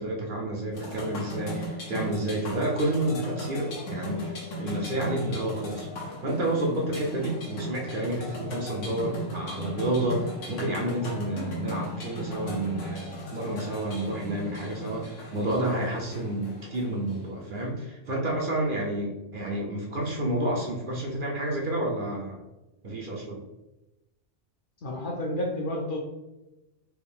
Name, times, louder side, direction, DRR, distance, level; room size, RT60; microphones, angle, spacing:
voice 1, 0.0-5.9 6.2-22.4 22.8-23.4, right 1 dB, 55° right, -1 dB, 0.7 m, -30 dB
sound 1, 0.7-17.6, equal, 80° left, 1.2 m, -37 dB
voice 2, 24.8-26.0, left 1 dB, 55° left, 0 dB, 0.7 m, -30 dB
4.6 x 2.3 x 3.5 m, 1.0 s
omnidirectional pair, 1.2 m